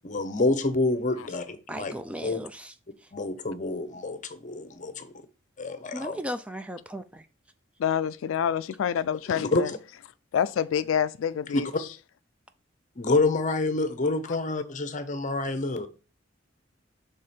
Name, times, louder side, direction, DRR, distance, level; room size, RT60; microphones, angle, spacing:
voice 1, 0.0-1.9 2.2-2.4 3.1-5.1 5.6-6.2 9.3-9.7 11.5-11.6 13.0-15.9, left 2 dB, 40° left, 0.7 m, -27 dB
voice 2, 1.7-2.7 3.0-3.1 5.9-7.3, equal, 5° right, 0.3 m, -36 dB
voice 3, 7.8-9.7 10.3-11.9 14.3-14.4, left 8 dB, 85° left, 0.3 m, -27 dB
6.6 x 3.6 x 4.3 m
head